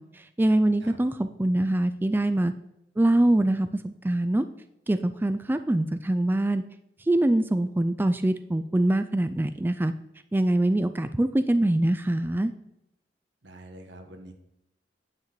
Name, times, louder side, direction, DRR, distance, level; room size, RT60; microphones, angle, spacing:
voice 1, 0.0-2.5 3.0-4.4 4.9-6.6 7.1-9.9 10.3-12.5, right 1 dB, 10° right, 10 dB, 0.3 m, -24 dB
voice 2, 13.4-14.3, right 1 dB, 85° right, 5 dB, 1.4 m, -46 dB
9.6 x 8.0 x 3.1 m, 0.84 s
head